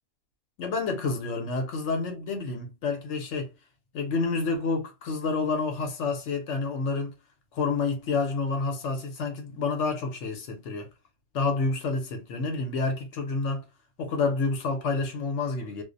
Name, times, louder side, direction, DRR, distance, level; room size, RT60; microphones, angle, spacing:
voice 1, 0.6-3.5 3.9-7.1 7.5-10.9 11.3-13.6 14.0-15.8, left 4 dB, 60° left, 0.9 m, -29 dB
2.4 x 2.0 x 2.5 m
omnidirectional pair, 1.6 m